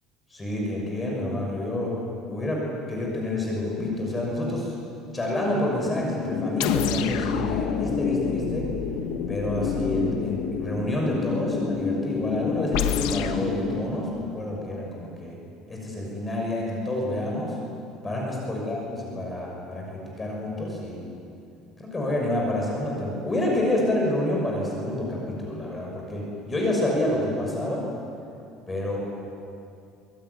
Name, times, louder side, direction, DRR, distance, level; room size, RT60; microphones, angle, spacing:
voice 1, 0.3-4.7 5.1-8.7 9.3-15.4 15.7-17.6 18.0-21.0 21.8-27.9 28.7-29.1, left 1 dB, 15° left, -1 dB, 6.3 m, -28 dB
sound 1, 3.8-4.9 5.2-5.3 5.5-13.8, left 5 dB, 45° left, 2.7 m, -30 dB
sound 2, 6.6-10.9 12.7-13.4, left 9 dB, 90° left, 1.9 m, -30 dB
25.5 x 21.5 x 9.7 m, 2.5 s
cardioid pair, 160°, 0 cm